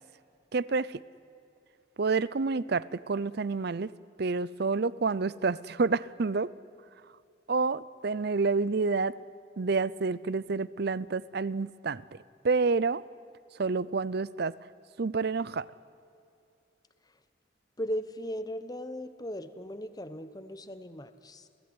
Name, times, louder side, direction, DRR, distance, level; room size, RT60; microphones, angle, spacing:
voice 1, 0.5-1.0 2.0-3.9 4.2-6.5 7.5-9.1 9.6-12.0 12.4-13.0 13.5-14.5 15.0-15.7, right 4 dB, 55° right, 20 dB, 0.6 m, -28 dB
voice 2, 17.8-21.5, equal, 20° left, 11 dB, 1.0 m, -37 dB
28.0 x 17.5 x 9.7 m, 2.6 s
head